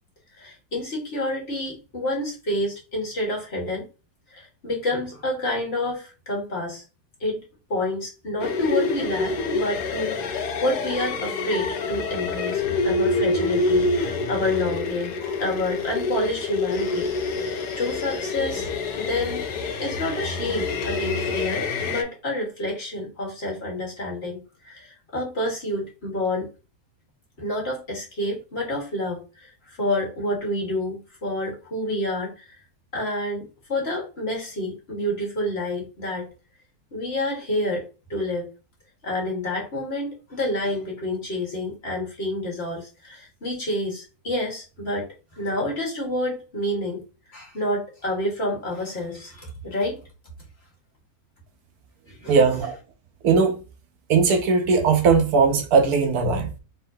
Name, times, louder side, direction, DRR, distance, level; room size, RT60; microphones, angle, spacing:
voice 1, 0.4-3.9 4.3-6.8 7.2-7.4 7.7-18.7 19.0-19.5 19.8-26.5 27.4-32.6 32.9-36.3 36.9-38.5 39.0-45.1 45.3-47.0 47.3-50.0 52.1-52.4, left 1 dB, 40° left, 1.8 m, -29 dB
sound 1, 8.4-22.0, left 3 dB, 85° left, 1.3 m, -26 dB
voice 2, 52.3-52.8 53.2-53.5 54.1-56.5, right 5 dB, 75° right, 1.2 m, -19 dB
4.3 x 3.7 x 2.7 m
omnidirectional pair, 1.7 m